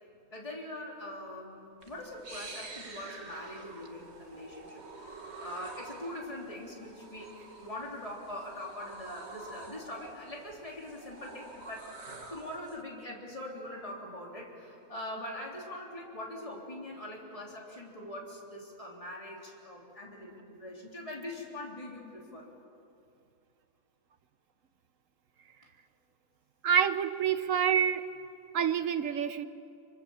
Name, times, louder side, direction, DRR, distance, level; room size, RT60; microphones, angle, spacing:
voice 1, 0.3-11.9 12.3-22.5, left 1 dB, 20° left, -2 dB, 3.6 m, -42 dB
sound 1, 1.8-12.8, right 3 dB, 45° right, 2.0 m, -48 dB
voice 2, 26.6-28.0 28.5-29.5, right 8 dB, 60° right, 11 dB, 1.2 m, -27 dB
27.5 x 25.5 x 7.2 m, 2.6 s
omnidirectional pair, 1.6 m